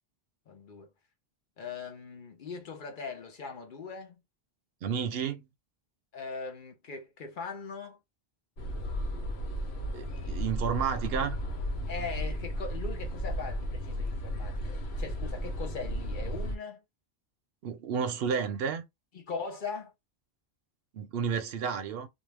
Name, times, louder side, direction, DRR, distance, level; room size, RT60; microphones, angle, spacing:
voice 1, 0.5-0.9 1.6-4.2 6.1-8.0 11.9-16.8 19.1-19.9, left 5 dB, 55° left, 0.8 m, -40 dB
voice 2, 4.8-5.5 9.9-11.4 17.6-18.8 20.9-22.1, right 7 dB, 70° right, 0.8 m, -31 dB
sound 1, 8.6-16.6, equal, 80° left, 1.0 m, -34 dB
2.5 x 2.1 x 3.2 m
omnidirectional pair, 1.1 m